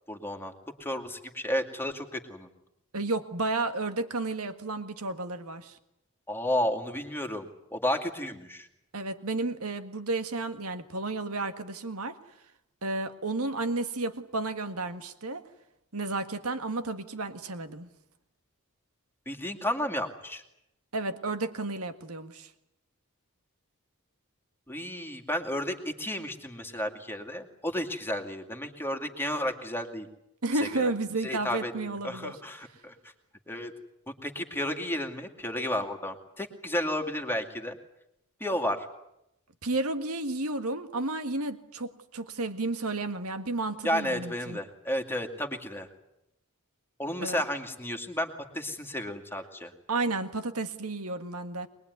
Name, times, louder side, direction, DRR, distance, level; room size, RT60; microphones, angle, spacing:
voice 1, 0.1-0.5 0.8-2.5 6.3-8.7 19.3-20.4 24.7-30.1 30.6-30.9 31.2-32.9 33.5-33.7 34.2-37.8 38.4-38.9 43.8-45.9 47.0-49.7, left 1 dB, 10° left, 5 dB, 2.3 m, -32 dB
voice 2, 2.9-5.8 8.9-12.2 12.8-15.4 15.9-17.9 20.9-22.5 30.4-32.4 39.6-44.6 47.2-47.4 49.9-51.7, right 2 dB, 75° right, 10 dB, 1.8 m, -32 dB
23.0 x 21.5 x 9.5 m, 0.83 s
head